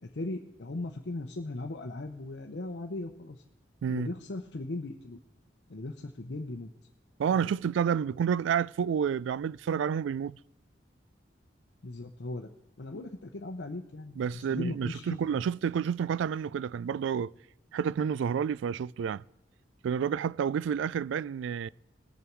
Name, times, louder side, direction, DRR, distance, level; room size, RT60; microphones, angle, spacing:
voice 1, 0.0-3.4 3.9-5.2 5.7-6.7 11.8-12.5 12.8-15.1, left 2 dB, 70° left, 0.8 m, -38 dB
voice 2, 7.2-10.4 14.2-17.3 17.7-19.2 19.8-21.7, right 7 dB, 85° right, 0.3 m, -29 dB
19.5 x 6.9 x 4.6 m
head